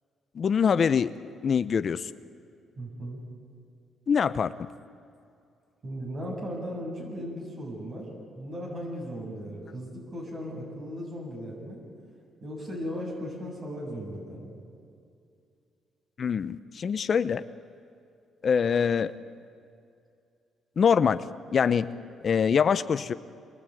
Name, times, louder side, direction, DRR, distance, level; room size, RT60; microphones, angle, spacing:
voice 1, 0.4-1.1 1.4-2.1 4.1-4.5 16.2-17.4 18.4-19.1 20.8-21.2 21.5-21.9 22.2-23.1, left 6 dB, 50° left, 14 dB, 0.8 m, -24 dB
voice 2, 2.8-3.2 5.8-11.8 12.4-14.5, equal, 45° right, -2 dB, 7.4 m, -37 dB
27.0 x 21.5 x 9.3 m, 2.4 s
cardioid pair, 90°, 0 cm